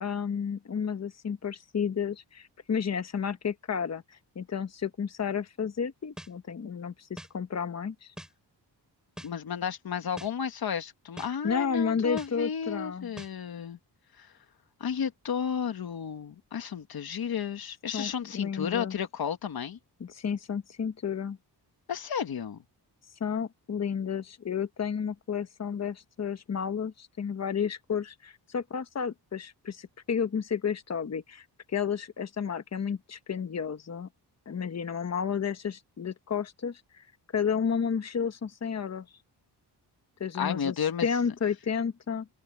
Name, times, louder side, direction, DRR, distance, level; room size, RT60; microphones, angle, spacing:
voice 1, 0.0-8.1 11.4-13.1 17.9-18.9 20.0-21.4 23.2-34.1 34.5-37.0 37.3-39.1 40.2-40.7 41.0-42.3, left 7 dB, 40° left, 1.2 m, -32 dB
sound 1, 6.2-6.3 7.2-7.3 8.2-8.3 9.2-9.3 10.2-10.3 11.2-11.3 12.2-12.3 13.2-13.3, equal, ahead, 3.7 m, -42 dB
voice 2, 9.2-13.8 14.2-14.3 14.8-19.8 21.9-22.6 40.3-41.1, left 7 dB, 60° left, 1.8 m, -32 dB
open air
wide cardioid pair, 130°, 42 cm